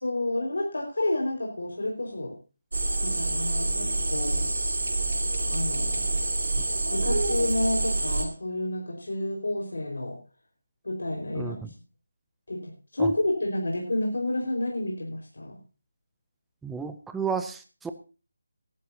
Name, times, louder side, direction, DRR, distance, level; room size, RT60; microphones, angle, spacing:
voice 1, 0.0-2.3 3.0-4.4 5.5-6.2 6.9-10.2 10.8-11.7 12.5-15.6, left 1 dB, 85° left, 0 dB, 4.9 m, -30 dB
sound 1, 2.7-8.3, right 2 dB, 70° right, 5.0 m, -27 dB
voice 2, 11.3-11.7 13.0-13.1 16.6-17.9, right 6 dB, 5° right, 8 dB, 0.5 m, -32 dB
19.0 x 13.0 x 2.8 m, 0.33 s
figure-of-eight pair, 170°, 0 cm